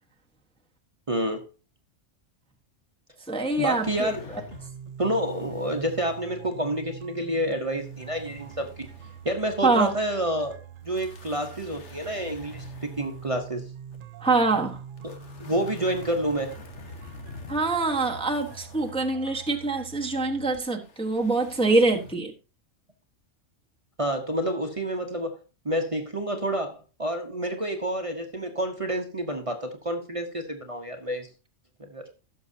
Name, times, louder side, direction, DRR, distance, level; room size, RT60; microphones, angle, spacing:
voice 1, 1.1-1.4 3.6-4.2 5.0-8.9 9.2-10.6 10.8-13.6 15.0-15.1 15.4-16.6 24.0-25.4 25.6-31.3 31.8-32.0, right 1 dB, 30° right, 1.0 m, -29 dB
voice 2, 3.3-4.4 9.6-9.9 14.2-14.8 17.5-22.3, right 3 dB, 5° left, 1.0 m, -24 dB
sound 1, 3.5-4.8 5.1-6.4 7.4-9.7 10.1-10.2 10.8-14.0 14.7-19.1 20.5-22.2, left 5 dB, 65° left, 1.6 m, -47 dB
sound 2, 4.5-20.5, right 8 dB, 50° right, 0.8 m, -44 dB
16.5 x 6.6 x 2.7 m
omnidirectional pair, 1.3 m